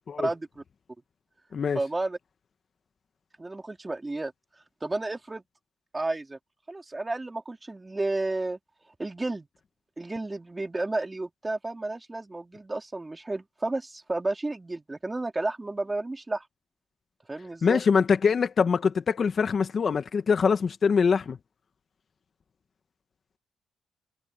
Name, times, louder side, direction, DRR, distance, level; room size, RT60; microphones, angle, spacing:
voice 1, 0.2-0.6 1.7-2.2 3.4-4.3 4.8-5.4 5.9-6.4 6.7-8.6 9.0-9.5 10.0-16.5 17.3-17.8, right 2 dB, 20° right, 4.1 m, -32 dB
voice 2, 17.6-21.4, left 6 dB, 45° left, 1.6 m, -23 dB
cardioid pair, 90°, 0 cm